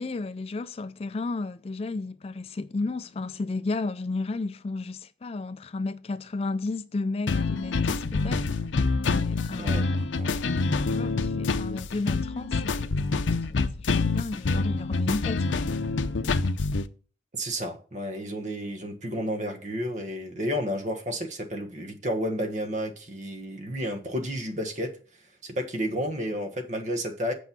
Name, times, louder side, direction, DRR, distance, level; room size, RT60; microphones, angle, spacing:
voice 1, 0.0-8.5 9.1-10.1 10.8-15.7, left 3 dB, 30° left, 0.3 m, -33 dB
sound 1, 7.3-16.8, left 3 dB, 90° left, 0.6 m, -26 dB
voice 2, 17.3-24.9 25.4-27.3, equal, 40° right, 1.4 m, -31 dB
8.4 x 5.4 x 5.9 m
head